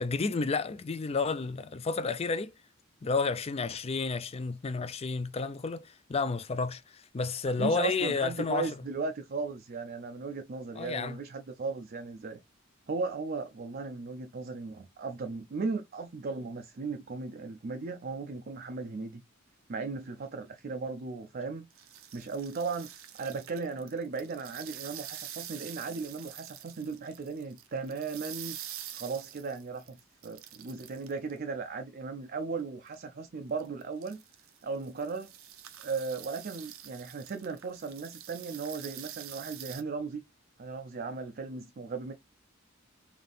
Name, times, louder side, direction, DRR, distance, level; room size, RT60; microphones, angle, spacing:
voice 1, 0.0-2.5 3.0-8.7 10.8-11.2, left 4 dB, 30° left, 0.4 m, -31 dB
voice 2, 7.5-12.4 12.9-19.2 19.7-21.7 22.1-28.6 28.9-34.2 34.6-35.3 35.8-40.2 40.6-42.1, right 4 dB, 45° right, 0.5 m, -36 dB
sound 1, 21.7-31.4 32.9-33.0 33.6-39.8, right 11 dB, 80° right, 0.7 m, -46 dB
3.5 x 2.7 x 3.9 m
head